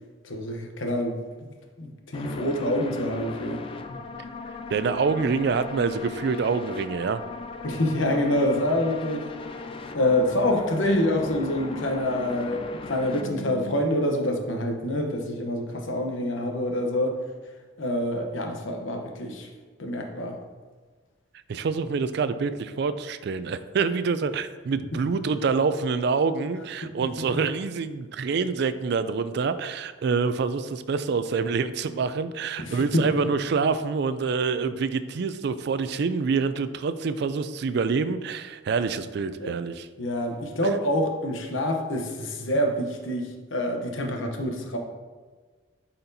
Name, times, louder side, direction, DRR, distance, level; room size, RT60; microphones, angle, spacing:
voice 1, 0.2-1.5 1.8-3.6 3.9-4.0 7.6-9.3 9.9-17.2 17.8-19.5 19.8-20.4 24.9-25.0 32.6-33.1 39.4-39.5 40.0-44.8, left 1 dB, 90° left, 3 dB, 0.9 m, -26 dB
sound 1, 2.1-13.8, left 4 dB, 30° left, 0.3 m, -38 dB
voice 2, 4.7-7.2 21.5-39.9, right 5 dB, 60° right, 12 dB, 0.3 m, -26 dB
8.9 x 4.3 x 2.7 m, 1.4 s
head